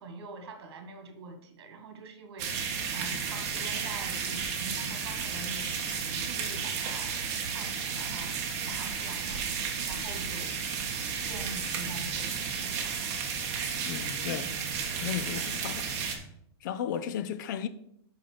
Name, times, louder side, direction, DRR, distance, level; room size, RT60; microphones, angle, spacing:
voice 1, 0.0-5.7 6.1-7.2 7.5-10.5 11.2-13.1, right 3 dB, 65° right, 1.9 m, -45 dB
sound 1, 2.4-16.2, right 6 dB, 40° right, 1.3 m, -33 dB
voice 2, 13.8-14.6 14.9-15.9 16.6-17.7, left 9 dB, 45° left, 0.6 m, -34 dB
5.7 x 5.6 x 6.6 m
supercardioid pair, 165°, 14 cm